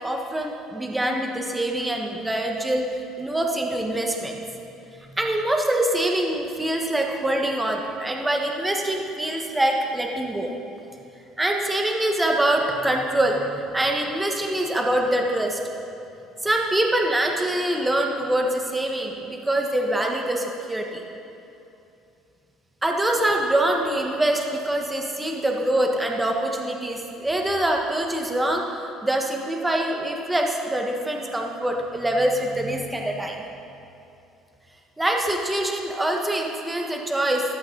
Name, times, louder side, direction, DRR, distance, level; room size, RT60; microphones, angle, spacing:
voice 1, 0.0-2.8 3.2-4.4 5.0-10.5 11.4-15.6 16.4-21.0 22.8-33.4 35.0-37.4, right 1 dB, 10° right, 1 dB, 1.4 m, -24 dB
14.5 x 12.0 x 4.0 m, 2.7 s
cardioid pair, 125°, 0 cm